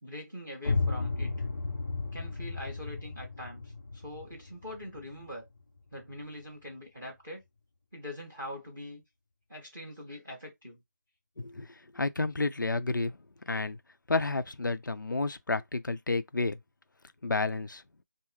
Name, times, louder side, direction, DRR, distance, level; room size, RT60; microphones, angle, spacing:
voice 1, 0.0-1.4 2.1-5.4 5.9-7.4 7.9-9.0 9.5-10.8, left 1 dB, ahead, 0.4 m, -43 dB
sound 1, 0.6-6.2, left 3 dB, 55° left, 0.8 m, -34 dB
voice 2, 11.4-11.7 11.9-13.1 13.5-13.8 14.1-16.6 17.2-17.8, left 3 dB, 85° left, 0.7 m, -30 dB
5.5 x 2.1 x 3.2 m
figure-of-eight pair, 175°, 10 cm